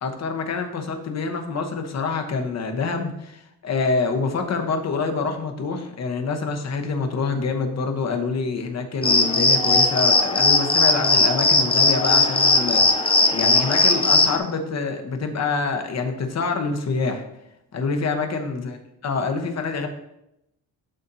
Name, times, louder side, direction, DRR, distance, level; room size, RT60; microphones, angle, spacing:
voice 1, 0.0-17.2 17.7-18.8 19.0-19.9, left 4 dB, 45° left, 5 dB, 1.0 m, -26 dB
sound 1, 9.0-14.4, left 3 dB, 15° left, 0.5 m, -18 dB
11.5 x 4.2 x 2.7 m, 0.82 s
cardioid pair, 140°, 35 cm